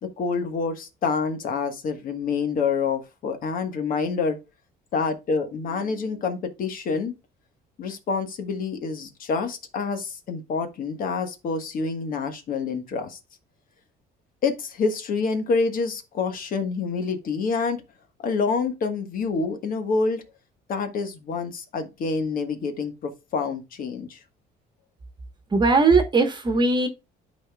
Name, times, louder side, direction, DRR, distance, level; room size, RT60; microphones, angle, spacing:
voice 1, 0.0-4.4 4.9-7.1 7.8-13.2 14.4-17.8 18.2-20.2 20.7-24.2, left 4 dB, 55° left, 1.4 m, -27 dB
voice 2, 25.5-26.9, right 3 dB, 25° right, 1.2 m, -19 dB
11.0 x 4.3 x 2.3 m
cardioid pair, 110°, 17 cm